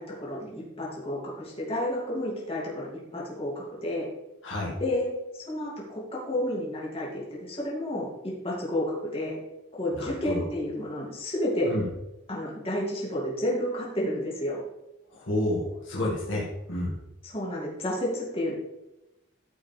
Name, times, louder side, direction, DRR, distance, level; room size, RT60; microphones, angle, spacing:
voice 1, 0.0-4.1 4.8-8.1 8.4-9.4 9.7-11.7 12.3-14.6 17.2-18.5, left 1 dB, 30° left, -5 dB, 2.9 m, -31 dB
voice 2, 4.4-4.7 9.9-10.4 11.6-11.8 15.1-16.9, left 1 dB, 75° left, -3 dB, 2.3 m, -30 dB
14.5 x 5.9 x 3.6 m, 0.94 s
head